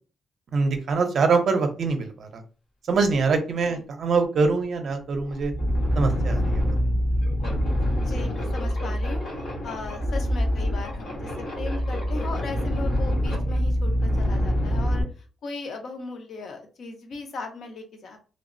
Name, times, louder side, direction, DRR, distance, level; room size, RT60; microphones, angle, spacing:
voice 1, 0.5-2.4 2.9-5.5 6.0-6.8, right 4 dB, 50° right, 6 dB, 0.6 m, -24 dB
sound 1, 5.3-15.0, equal, 80° left, 1.4 m, -25 dB
voice 2, 8.0-18.2, left 3 dB, 55° left, 5 dB, 0.6 m, -37 dB
3.2 x 2.0 x 2.5 m, 0.36 s
wide cardioid pair, 155°, 0 cm